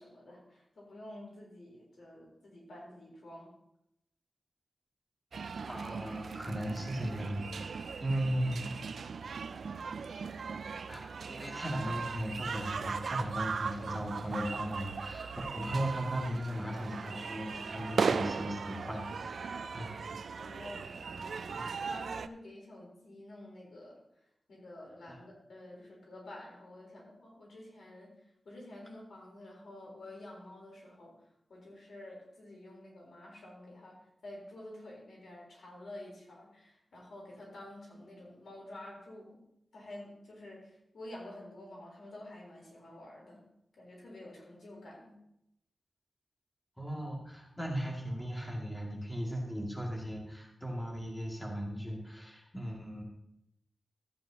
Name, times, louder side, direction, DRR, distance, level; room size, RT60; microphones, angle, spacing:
voice 1, 0.0-3.5 20.4-21.4 21.8-24.0 24.5-28.1 28.4-34.0 34.2-39.4 39.7-43.4 43.8-45.2, left 1 dB, 85° left, -3 dB, 4.0 m, -49 dB
sound 1, 5.3-22.3, right 5 dB, 85° right, 0.3 m, -38 dB
voice 2, 5.7-8.9 10.9-20.0 21.5-21.7 25.1-25.2 46.8-53.0, equal, 5° left, -2 dB, 2.3 m, -37 dB
14.0 x 8.8 x 2.9 m, 0.82 s
wide cardioid pair, 105°, 0 cm